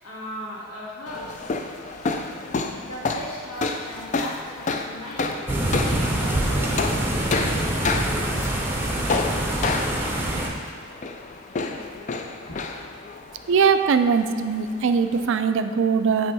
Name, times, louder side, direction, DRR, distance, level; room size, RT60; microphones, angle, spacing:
voice 1, 0.0-2.0 2.6-5.4 5.8-8.5 12.5-12.6, equal, 85° left, -5 dB, 1.6 m, -38 dB
sound 1, 1.1-15.3, left 3 dB, 35° left, 0.3 m, -30 dB
sound 2, 5.5-10.5, right 1 dB, 10° right, 0.6 m, -25 dB
voice 2, 13.5-16.3, right 6 dB, 60° right, 9 dB, 0.3 m, -21 dB
8.8 x 3.0 x 4.7 m, 2.2 s
head